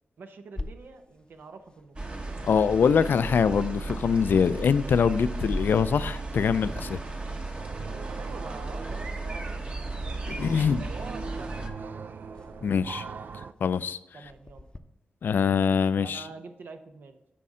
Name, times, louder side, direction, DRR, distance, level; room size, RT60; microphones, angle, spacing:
voice 1, 0.2-2.2 8.1-9.5 9.9-10.2 10.5-12.1 14.1-14.7 16.0-17.2, right 4 dB, 85° right, 7 dB, 0.8 m, -46 dB
sound 1, 0.6-14.8, left 2 dB, 25° left, 0.6 m, -46 dB
sound 2, 2.0-11.7, right 2 dB, 35° right, 1.0 m, -35 dB
voice 2, 2.4-7.0 10.3-10.9 12.6-13.0 13.6-14.0 15.2-16.2, left 6 dB, 75° left, 15 dB, 0.3 m, -24 dB
sound 3, 7.6-13.5, right 5 dB, 70° right, 0.4 m, -41 dB
8.5 x 5.4 x 3.7 m, 0.92 s
wide cardioid pair, 90°, 3 cm